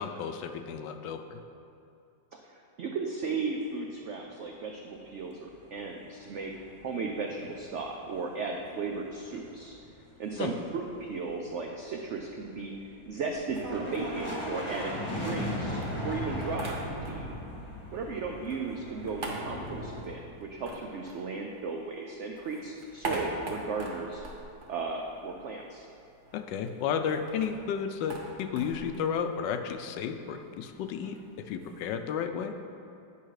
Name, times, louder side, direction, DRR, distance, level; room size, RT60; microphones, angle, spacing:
voice 1, 0.0-1.4 10.4-10.5 26.3-31.2 31.5-32.5, left 7 dB, 80° left, 7 dB, 1.2 m, -32 dB
voice 2, 2.3-6.5 6.8-9.7 10.2-12.7 13.1-17.3 17.9-24.2 24.7-25.9, right 4 dB, 90° right, 1 dB, 0.6 m, -35 dB
sound 1, 5.9-8.0 8.3-20.0, left 1 dB, 20° left, 0.9 m, -38 dB
sound 2, 13.3-15.5 15.8-17.4 17.7-21.9 22.2-25.5 25.8-25.9 26.1-31.9, right 1 dB, 40° right, 0.9 m, -42 dB
8.7 x 5.6 x 4.8 m, 2.7 s
omnidirectional pair, 1.9 m